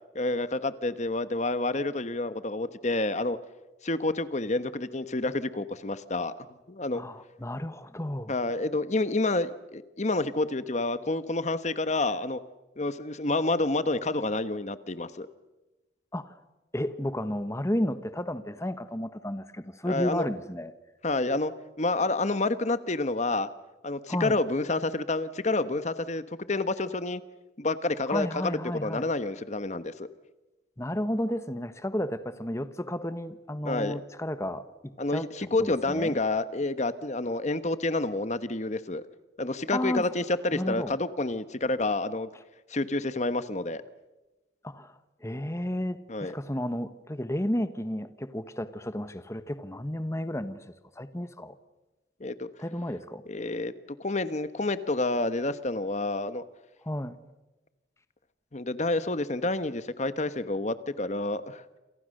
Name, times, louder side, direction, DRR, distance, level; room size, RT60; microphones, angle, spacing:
voice 1, 0.1-3.4 3.8-7.0 8.3-12.4 12.8-15.3 19.9-20.3 21.0-21.5 21.8-23.5 23.8-27.2 27.6-30.1 33.6-34.0 35.0-39.0 39.4-42.3 42.7-43.8 46.1-46.3 52.2-52.5 53.3-53.7 54.0-56.4 58.5-61.6, left 2 dB, 40° left, 13 dB, 1.2 m, -29 dB
voice 2, 6.9-8.3 16.1-16.4 16.7-20.7 24.1-24.4 28.1-29.1 30.8-35.3 35.6-36.2 39.7-40.0 40.5-41.0 44.6-50.6 50.9-51.5 52.6-53.2 56.8-57.2, left 1 dB, 15° left, 11 dB, 1.2 m, -32 dB
28.0 x 28.0 x 6.6 m, 1.1 s
head